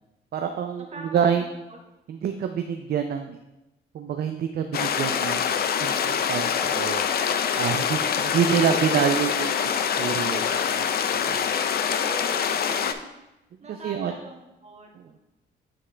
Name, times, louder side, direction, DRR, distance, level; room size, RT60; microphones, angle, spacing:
voice 1, 0.3-0.9 1.1-1.4 2.1-3.4 3.9-5.5 5.8-7.0 7.6-10.4 10.7-10.9 11.3-11.4 13.7-14.1, right 8 dB, 55° right, 6 dB, 0.5 m, -26 dB
voice 2, 0.9-1.8 8.1-9.0 11.7-13.1 13.6-15.1, right 2 dB, 35° right, 0 dB, 1.4 m, -42 dB
sound 1, 4.7-12.9, left 7 dB, 50° left, 0.5 m, -25 dB
9.8 x 3.6 x 3.3 m, 0.95 s
cardioid pair, 90°, 20 cm